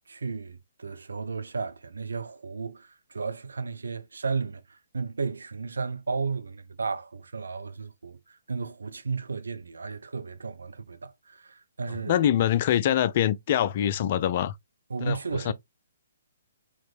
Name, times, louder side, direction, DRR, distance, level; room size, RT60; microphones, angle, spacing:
voice 1, 0.0-12.2 14.9-15.5, right 4 dB, 65° right, 0.5 m, -34 dB
voice 2, 12.1-14.6 15.0-15.2 15.5-15.6, left 11 dB, 40° left, 0.3 m, -24 dB
4.3 x 2.9 x 2.4 m
figure-of-eight pair, 130°, 0 cm